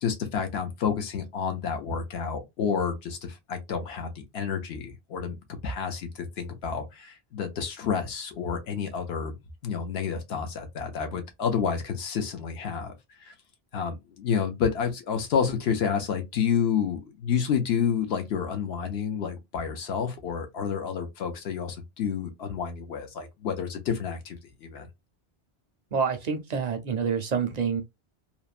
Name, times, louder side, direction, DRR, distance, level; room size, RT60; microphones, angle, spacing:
voice 1, 0.0-9.4 9.6-12.9 13.2-13.3 13.7-24.9, left 7 dB, 75° left, 0.9 m, -29 dB
voice 2, 25.9-27.8, right 6 dB, 55° right, 0.5 m, -27 dB
2.9 x 2.1 x 2.3 m
omnidirectional pair, 1.1 m